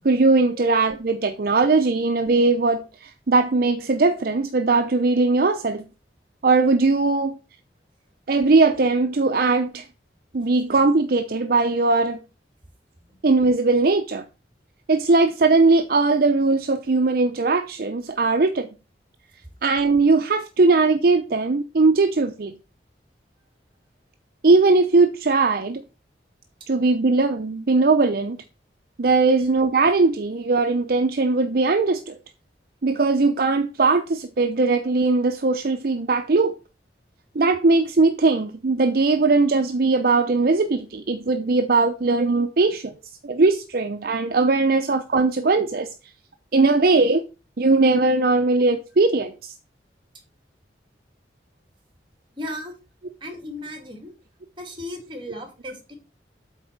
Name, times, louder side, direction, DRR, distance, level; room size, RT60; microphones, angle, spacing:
voice 1, 0.0-5.8 6.4-7.3 8.3-9.9 10.3-12.2 13.2-14.2 14.9-18.7 19.6-22.5 24.4-25.8 26.7-28.4 29.0-32.2 32.8-36.6 37.3-42.9 43.2-45.9 46.5-47.2 47.6-49.5, right 3 dB, 55° right, 0.6 m, -19 dB
voice 2, 52.4-52.7 53.2-54.1 54.6-55.9, left 1 dB, 30° right, 2.3 m, -36 dB
8.2 x 4.1 x 5.8 m
head